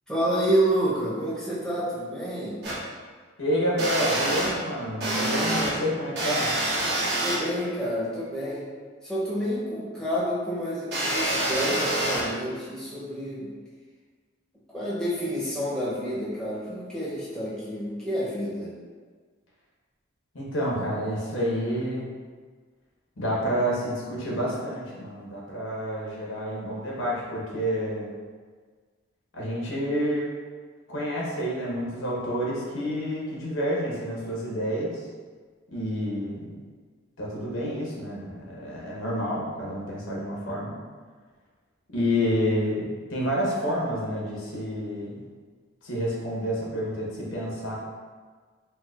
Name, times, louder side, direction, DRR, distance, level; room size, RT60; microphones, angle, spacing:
voice 1, 0.1-2.6 7.2-8.7 9.0-13.5 14.7-18.7, equal, 5° left, -8 dB, 0.6 m, -29 dB
sound 1, 2.6-2.7 3.8-4.5 5.0-5.7 6.2-7.3 10.9-12.2, right 1 dB, 55° right, 0.9 m, -26 dB
voice 2, 3.4-6.5 20.3-22.1 23.2-28.1 29.3-30.3 30.9-35.1 35.7-36.6 37.2-40.7 41.9-45.2 45.8-47.8, equal, 85° left, -4 dB, 0.9 m, -29 dB
4.5 x 2.1 x 2.4 m, 1.5 s
head